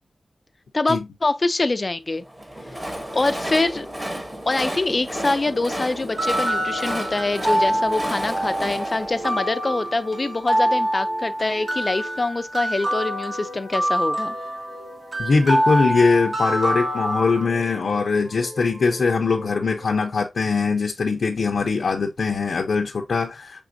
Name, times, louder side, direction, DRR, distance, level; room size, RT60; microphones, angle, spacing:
voice 1, 0.7-2.2 3.1-3.9 4.5-14.4, left 2 dB, 35° left, 0.4 m, -24 dB
Train, 2.2-10.4, right 1 dB, 20° right, 1.0 m, -32 dB
sound 1, 5.1-12.3 12.7-16.1 16.4-20.1, equal, 45° right, 3.4 m, -41 dB
sound 2, 6.1-17.5, equal, 65° right, 1.7 m, -25 dB
voice 2, 15.2-23.6, left 4 dB, 75° left, 0.6 m, -21 dB
6.1 x 3.4 x 2.6 m
wide cardioid pair, 135°, 0 cm